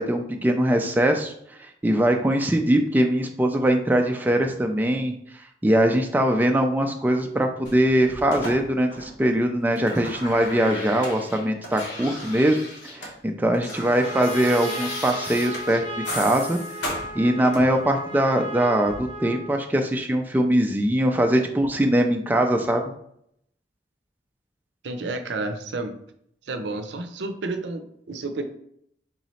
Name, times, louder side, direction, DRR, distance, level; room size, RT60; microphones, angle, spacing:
voice 1, 0.0-1.3 1.6-5.1 5.6-12.6 12.8-16.6 17.2-22.9, right 1 dB, 10° right, 3 dB, 0.3 m, -22 dB
sound 1, 7.6-9.3 9.6-13.2 13.4-17.9 18.8-19.0, left 1 dB, 75° left, 1.2 m, -36 dB
Trumpet, 13.6-19.6, equal, 45° left, 0.9 m, -36 dB
voice 2, 24.8-26.0 26.4-28.4, right 2 dB, 80° right, 7 dB, 0.5 m, -31 dB
3.8 x 3.0 x 4.1 m, 0.71 s
head